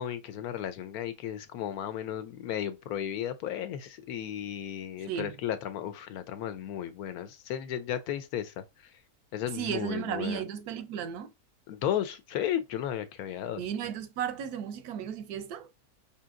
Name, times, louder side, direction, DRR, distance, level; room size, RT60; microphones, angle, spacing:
voice 1, 0.0-8.9 9.3-10.4 11.7-13.6, left 10 dB, 80° left, 1.1 m, -34 dB
voice 2, 9.5-11.3 13.6-15.7, right 8 dB, 90° right, 1.1 m, -34 dB
5.0 x 2.8 x 2.5 m
omnidirectional pair, 1.6 m